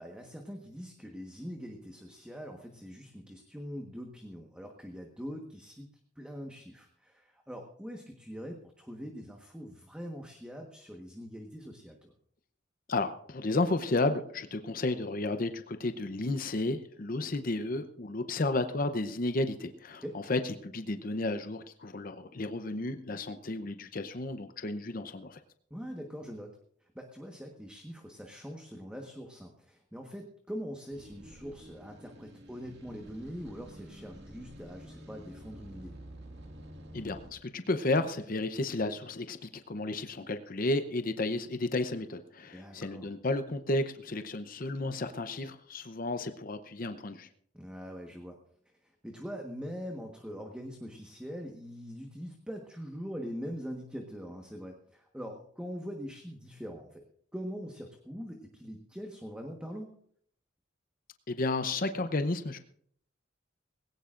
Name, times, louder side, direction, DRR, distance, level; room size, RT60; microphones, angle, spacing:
voice 1, 0.0-5.9 6.2-12.1 20.0-20.2 25.7-26.6 26.9-36.0 42.5-43.1 47.5-48.4 49.0-57.0 57.3-59.9, equal, 5° right, 2 dB, 1.3 m, -43 dB
voice 2, 12.9-25.4 36.9-47.3 61.3-62.6, left 2 dB, 45° left, 9 dB, 0.8 m, -32 dB
sound 1, 30.9-37.3, right 1 dB, 60° right, 2.1 m, -49 dB
19.5 x 17.5 x 2.5 m, 0.62 s
head